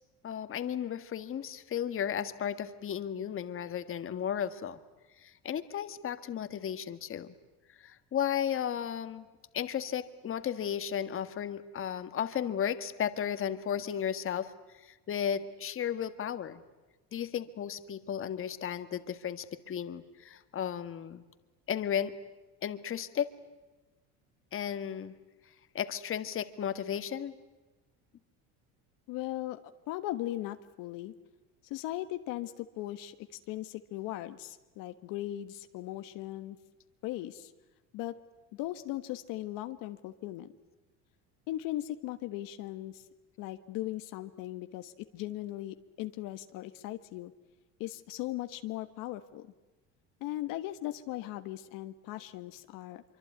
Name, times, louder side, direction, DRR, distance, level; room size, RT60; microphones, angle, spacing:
voice 1, 0.2-4.8 5.2-7.3 7.8-9.3 9.5-14.5 14.8-16.6 17.1-21.2 21.7-22.1 22.6-23.3 24.5-25.1 25.7-27.3, left 9 dB, 40° left, 12 dB, 1.6 m, -34 dB
voice 2, 29.1-29.6 29.9-31.1 31.7-36.6 37.0-37.5 37.9-38.2 38.5-40.5 41.5-43.0 43.4-47.3 47.8-49.5 50.2-53.0, left 15 dB, 75° left, 9 dB, 1.4 m, -38 dB
25.0 x 24.5 x 9.5 m, 1.2 s
cardioid pair, 115°, 33 cm